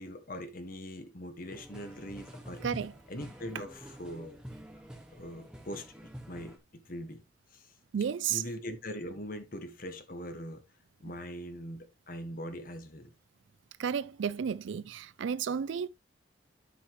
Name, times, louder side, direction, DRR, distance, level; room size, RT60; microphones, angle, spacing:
voice 1, 0.0-2.6 3.1-4.4 5.1-7.2 7.5-7.7 8.3-10.6 11.0-13.1, equal, 45° left, 1.6 m, -42 dB
sound 1, 1.5-6.6, equal, 5° right, 1.7 m, -47 dB
voice 2, 2.6-2.9 7.9-8.4 13.8-15.9, right 7 dB, 75° right, 0.4 m, -32 dB
11.5 x 5.5 x 3.2 m
head